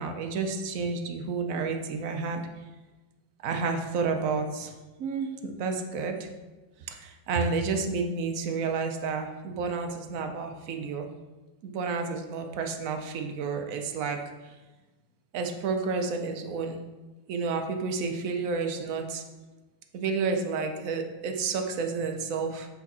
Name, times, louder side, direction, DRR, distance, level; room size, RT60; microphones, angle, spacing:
voice 1, 0.0-2.4 3.4-4.7 5.0-6.3 6.9-11.1 11.6-14.2 15.3-16.8 17.3-19.2 19.9-22.7, right 4 dB, 60° right, 5 dB, 1.0 m, -30 dB
8.3 x 4.6 x 4.2 m, 1.2 s
omnidirectional pair, 2.0 m